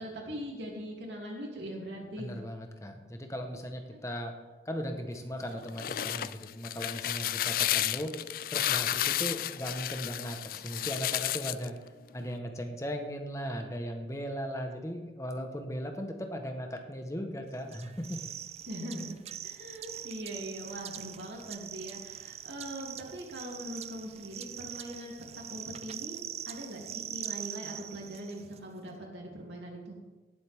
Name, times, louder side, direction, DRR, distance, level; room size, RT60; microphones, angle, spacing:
voice 1, 0.0-2.4 3.9-4.0 18.7-19.1 19.4-25.1 25.5-26.2 26.4-30.0, equal, 80° right, -1 dB, 3.0 m, -41 dB
voice 2, 2.2-4.3 4.6-8.1 8.5-11.7 12.1-18.3, equal, 15° left, 4 dB, 1.2 m, -37 dB
sound 1, 5.5-11.7, left 12 dB, 50° left, 0.3 m, -32 dB
sound 2, 17.7-28.6, right 11 dB, 35° right, 0.3 m, -43 dB
18.5 x 7.9 x 3.6 m, 1.2 s
head